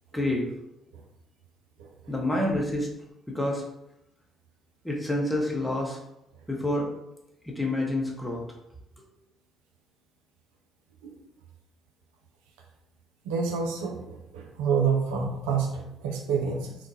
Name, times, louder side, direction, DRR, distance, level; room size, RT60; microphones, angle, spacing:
voice 1, 0.1-0.5 2.1-2.9 3.3-3.6 4.8-6.0 6.5-6.9 7.4-8.4, left 1 dB, 5° left, -2 dB, 0.8 m, -28 dB
voice 2, 1.8-2.1 11.0-11.2 13.3-16.7, right 6 dB, 70° right, 1 dB, 0.3 m, -28 dB
3.0 x 2.1 x 2.6 m, 0.85 s
figure-of-eight pair, 50°, 0 cm